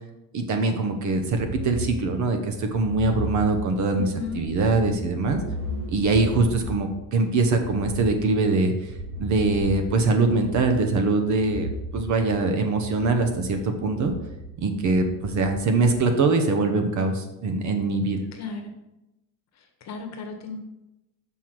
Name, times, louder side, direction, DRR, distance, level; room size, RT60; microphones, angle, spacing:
voice 1, 0.3-5.4 5.9-8.7 9.2-14.1 14.6-18.2, right 3 dB, 40° right, 6 dB, 0.9 m, -23 dB
sound 1, 1.2-15.9, equal, 90° right, 2.7 m, -36 dB
voice 2, 3.9-4.4 18.3-18.7 19.8-20.6, left 5 dB, 35° left, 4 dB, 1.2 m, -34 dB
6.2 x 5.6 x 4.5 m, 0.94 s
cardioid pair, 145°, 44 cm